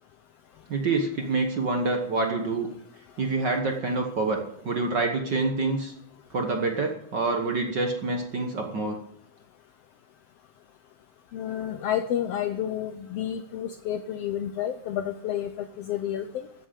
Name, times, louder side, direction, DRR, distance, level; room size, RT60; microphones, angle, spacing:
voice 1, 0.7-2.7 3.2-5.9 6.3-9.0, right 3 dB, 50° right, 3 dB, 1.4 m, -27 dB
voice 2, 11.3-15.5 15.8-16.2, left 10 dB, 75° left, 9 dB, 1.5 m, -30 dB
14.5 x 7.7 x 8.2 m, 0.71 s
omnidirectional pair, 3.4 m